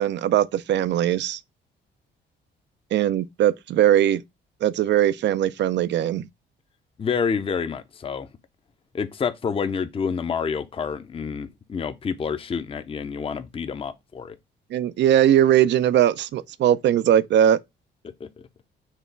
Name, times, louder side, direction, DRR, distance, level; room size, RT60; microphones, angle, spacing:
voice 1, 0.0-1.4 2.9-4.2 4.6-6.2 14.7-17.6, right 11 dB, 65° right, 0.4 m, -20 dB
voice 2, 7.0-8.3 8.9-14.4 18.2-18.3, left 6 dB, 30° left, 0.5 m, -28 dB
4.6 x 2.9 x 3.3 m
cardioid pair, 90°, 20 cm